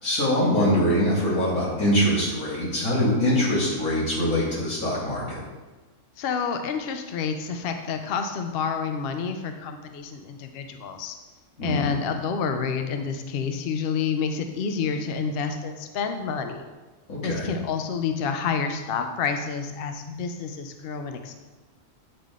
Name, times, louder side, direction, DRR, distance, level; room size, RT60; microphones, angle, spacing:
voice 1, 0.0-5.4 11.6-11.9 17.1-17.5, equal, 80° left, -6 dB, 2.4 m, -23 dB
voice 2, 6.2-11.2 11.6-16.7 17.2-21.3, left 6 dB, 60° left, 6 dB, 0.6 m, -29 dB
8.8 x 3.7 x 3.6 m, 1.2 s
omnidirectional pair, 1.4 m